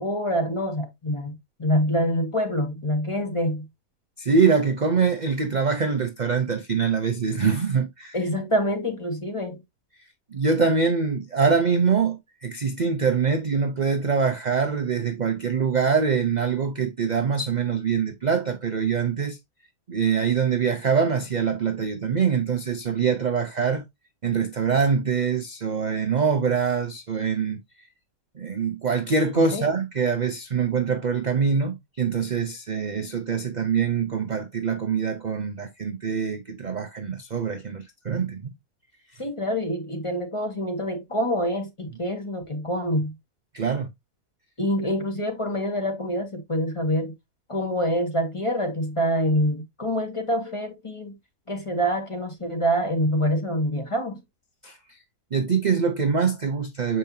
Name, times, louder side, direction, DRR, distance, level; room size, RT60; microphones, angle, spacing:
voice 1, 0.0-3.7 8.1-9.6 29.3-29.6 39.2-43.1 44.6-47.1 47.5-51.1 51.5-54.2, equal, 20° left, 1.8 m, -26 dB
voice 2, 4.2-8.2 10.3-19.4 19.9-23.8 24.2-27.6 28.4-38.5 43.5-43.9 54.6-55.0 55.3-57.0, right 5 dB, 40° right, 0.7 m, -24 dB
7.4 x 5.2 x 2.7 m
omnidirectional pair, 1.6 m